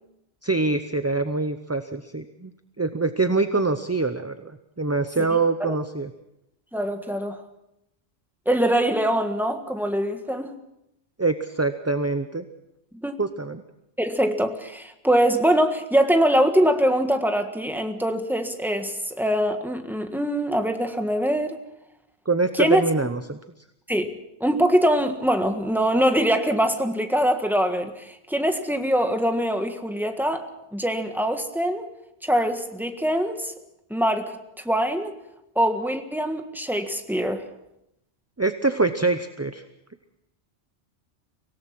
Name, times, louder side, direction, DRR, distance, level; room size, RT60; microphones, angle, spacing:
voice 1, 0.4-2.5 2.8-6.1 11.2-12.4 13.2-13.6 22.3-23.4 38.4-39.6, right 3 dB, 15° right, 9 dB, 0.6 m, -24 dB
voice 2, 6.7-7.4 8.4-10.5 12.9-13.2 14.0-21.6 22.5-22.8 23.9-31.9 32.2-33.5 33.9-34.4 34.6-35.1 35.5-37.4, equal, ahead, 6 dB, 1.5 m, -23 dB
25.0 x 17.5 x 6.0 m, 0.84 s
omnidirectional pair, 1.1 m